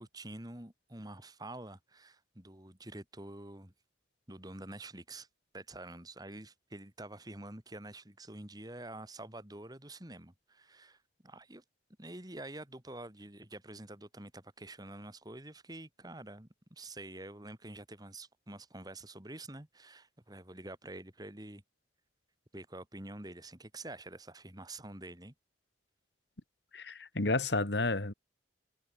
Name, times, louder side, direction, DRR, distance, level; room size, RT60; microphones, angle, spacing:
voice 1, 0.0-3.7 4.3-5.3 5.5-11.6 12.0-21.6 22.5-25.3, right 1 dB, 20° right, 2.6 m, -47 dB
voice 2, 26.7-28.1, left 2 dB, 65° left, 1.8 m, -31 dB
head